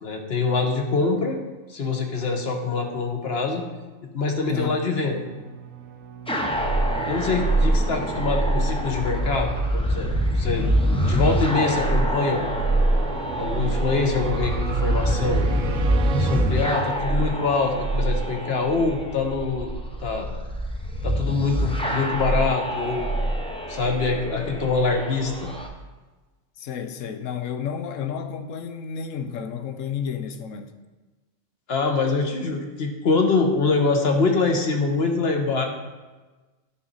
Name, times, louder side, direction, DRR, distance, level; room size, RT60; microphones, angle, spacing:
voice 1, 0.0-1.4 1.7-3.6 4.1-5.2 7.0-10.1 10.3-10.7 11.0-12.7 13.4-15.5 16.2-19.7 20.0-20.3 21.0-23.1 23.7-25.5 31.7-35.6, left 4 dB, 55° left, 1.1 m, -24 dB
voice 2, 4.5-4.8 26.6-30.7, left 7 dB, 75° left, 1.0 m, -31 dB
sound 1, 4.6-17.3, right 7 dB, 85° right, 1.0 m, -36 dB
sound 2, 6.3-25.7, right 1 dB, 5° left, 0.6 m, -25 dB
9.4 x 6.1 x 4.0 m
omnidirectional pair, 1.4 m